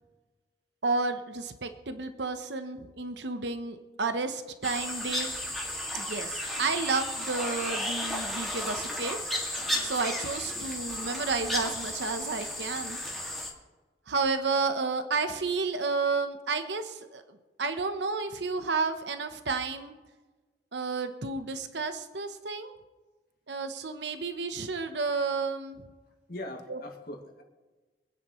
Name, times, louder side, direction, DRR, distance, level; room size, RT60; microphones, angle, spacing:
voice 1, 0.8-5.3 5.9-9.2 9.8-13.0 14.1-17.2 17.6-19.9 20.7-22.7 23.5-25.8 26.7-26.8, right 4 dB, 80° right, 8 dB, 1.0 m, -31 dB
sound 1, 4.6-13.5, left 1 dB, ahead, 2.1 m, -34 dB
voice 2, 26.3-27.4, left 1 dB, 60° left, 1 dB, 2.3 m, -41 dB
26.0 x 9.9 x 3.1 m, 1.3 s
head